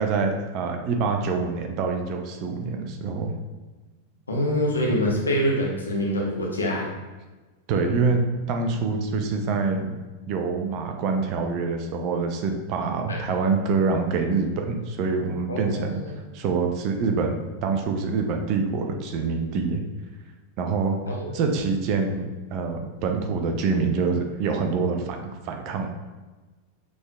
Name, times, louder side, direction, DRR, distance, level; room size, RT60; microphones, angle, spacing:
voice 1, 0.0-3.3 7.7-8.2 8.5-10.0 10.3-16.0 16.3-19.8 20.6-21.0 21.3-25.9, right 4 dB, 40° right, 4 dB, 0.6 m, -25 dB
voice 2, 4.3-6.9 13.1-13.2 15.5-16.1 21.1-21.3, equal, 75° left, -2 dB, 1.0 m, -25 dB
6.1 x 3.6 x 2.3 m, 1.2 s
figure-of-eight pair, 90°, 0 cm